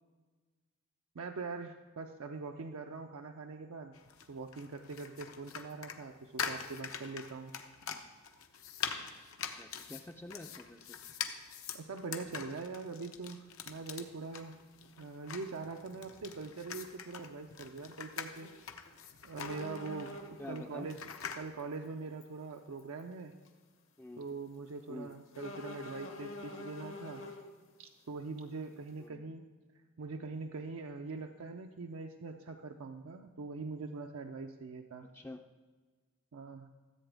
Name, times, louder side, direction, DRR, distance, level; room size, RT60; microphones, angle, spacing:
voice 1, 1.1-3.9 4.3-7.5 11.7-14.5 15.0-18.5 19.2-20.1 20.5-23.3 24.2-27.2 27.8-29.5 30.0-35.1 36.3-36.7, right 4 dB, 85° right, 4 dB, 0.5 m, -43 dB
sound 1, 3.9-21.4, left 7 dB, 85° left, 0.8 m, -44 dB
voice 2, 9.4-11.0 20.4-20.9 24.0-24.3 24.9-25.2 29.0-29.2 35.1-35.4, left 2 dB, 10° left, 4 dB, 0.3 m, -47 dB
sound 2, 13.7-13.8 15.4-15.6 15.9-16.0 16.3-16.4 18.3-18.6 18.9-19.0 19.4-20.6 21.6-21.7 22.2-22.3 22.8-23.0 23.5-23.6 25.3-27.5, left 2 dB, 70° left, 1.1 m, -45 dB
14.0 x 7.9 x 3.4 m, 1.4 s
head